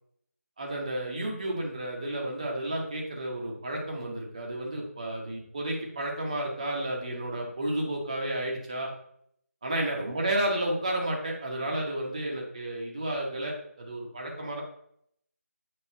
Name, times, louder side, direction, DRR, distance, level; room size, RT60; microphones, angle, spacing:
voice 1, 0.6-8.9 9.6-14.6, right 1 dB, 25° right, -2 dB, 1.0 m, -32 dB
8.1 x 5.2 x 2.7 m, 0.68 s
figure-of-eight pair, 165°, 9 cm